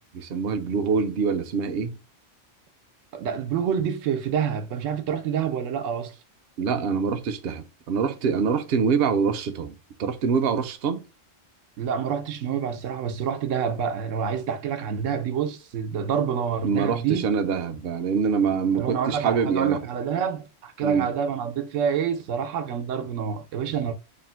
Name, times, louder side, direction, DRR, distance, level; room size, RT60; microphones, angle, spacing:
voice 1, 0.1-2.0 6.6-11.0 16.6-19.8 20.8-21.1, right 6 dB, 60° right, 0.7 m, -25 dB
voice 2, 3.1-6.1 11.8-17.2 18.7-23.9, right 7 dB, 90° right, 1.0 m, -27 dB
3.3 x 2.6 x 4.2 m
omnidirectional pair, 1.3 m